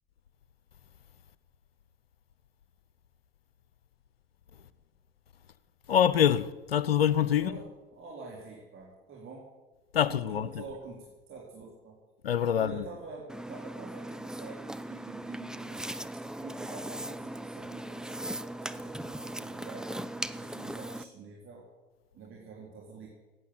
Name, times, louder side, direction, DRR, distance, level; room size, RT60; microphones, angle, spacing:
voice 1, 5.9-7.5 9.9-10.6 12.2-12.8, left 9 dB, 90° left, 0.7 m, -25 dB
voice 2, 7.9-9.5 10.0-12.0 12.5-16.0 16.4-18.9 19.2-19.9 20.4-21.7 22.1-23.1, right 4 dB, 45° right, 3.8 m, -46 dB
sound 1, 13.3-21.0, right 1 dB, ahead, 0.7 m, -39 dB
15.0 x 9.4 x 8.1 m
hypercardioid pair, 70°, 29 cm